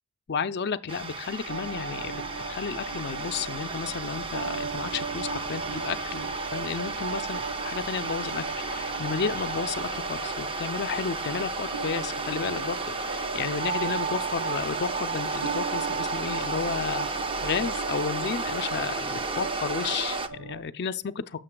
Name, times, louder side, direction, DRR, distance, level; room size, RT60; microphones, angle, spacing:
voice 1, 0.3-2.2 2.5-17.1 17.4-21.4, left 6 dB, 50° left, 0.5 m, -32 dB
sound 1, 0.9-20.3, right 3 dB, 25° right, 0.5 m, -34 dB
sound 2, 1.5-20.6, right 4 dB, 80° right, 1.3 m, -36 dB
13.5 x 6.6 x 2.2 m
head